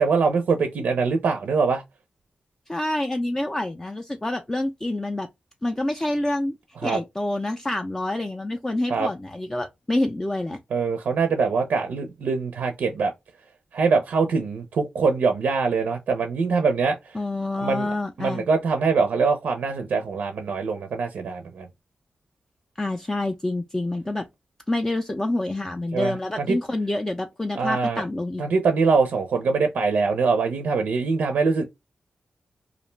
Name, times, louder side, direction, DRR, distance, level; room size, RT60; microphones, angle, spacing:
voice 1, 0.0-1.8 6.8-7.0 8.9-9.1 10.7-13.1 13.7-17.1 17.6-17.9 18.2-21.7 25.9-26.6 27.6-28.0 28.4-31.6, right 4 dB, 90° right, 0.4 m, -23 dB
voice 2, 2.7-5.3 5.6-6.5 6.8-10.6 17.1-18.4 22.8-24.3 24.7-28.4, left 1 dB, 15° left, 0.3 m, -27 dB
2.4 x 2.1 x 3.1 m
wide cardioid pair, 85°, 3 cm